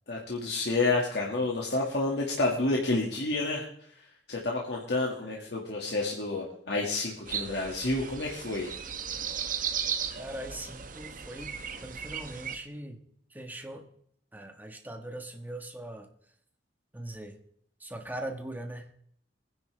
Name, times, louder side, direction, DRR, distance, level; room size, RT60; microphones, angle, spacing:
voice 1, 0.1-3.6 4.3-8.8, left 2 dB, 70° left, -2 dB, 2.0 m, -29 dB
sound 1, 7.3-12.6, right 7 dB, 50° right, 1.0 m, -36 dB
voice 2, 10.1-13.0 13.3-13.9 14.3-16.1 16.9-17.4 17.8-18.9, right 1 dB, 10° right, 4 dB, 1.5 m, -41 dB
23.5 x 10.5 x 3.4 m, 0.68 s
head